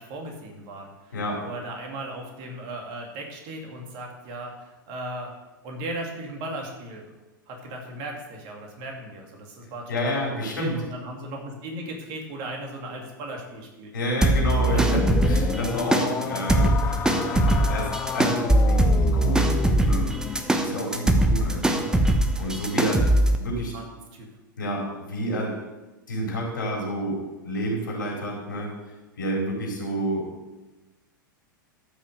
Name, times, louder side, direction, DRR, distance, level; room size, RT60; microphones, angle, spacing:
voice 1, 0.0-1.2 1.4-5.3 5.6-7.1 7.5-13.9 14.7-15.0 23.3-23.4 23.7-23.8 24.1-24.3, right 1 dB, 40° right, 1 dB, 2.7 m, -37 dB
voice 2, 9.9-10.8 13.9-20.1 20.6-23.1 23.4-23.7 24.6-25.5 26.1-27.2 27.4-28.7 29.2-30.3, equal, 65° left, -1 dB, 4.2 m, -29 dB
sound 1, 14.2-23.4, right 1 dB, 5° right, 1.0 m, -22 dB
sound 2, 14.5-20.5, left 9 dB, 20° left, 0.4 m, -32 dB
13.5 x 6.1 x 6.7 m, 1.1 s
figure-of-eight pair, 90°, 11 cm